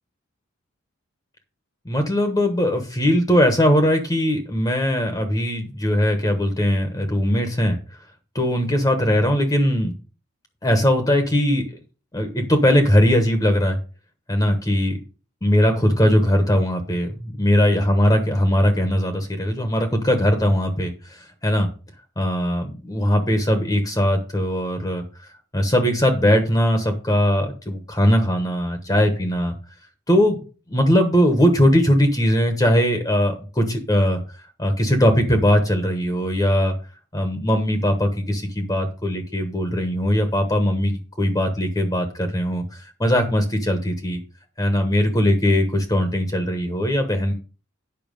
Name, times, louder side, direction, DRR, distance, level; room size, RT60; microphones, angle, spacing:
voice 1, 1.8-7.8 8.3-9.9 10.6-11.6 12.1-13.8 14.3-15.0 15.4-21.7 22.2-25.0 25.5-29.5 30.1-30.4 30.7-34.2 34.6-36.7 37.1-44.2 44.6-47.3, equal, 15° left, 6 dB, 1.0 m, -20 dB
9.3 x 5.8 x 5.2 m, 0.35 s
head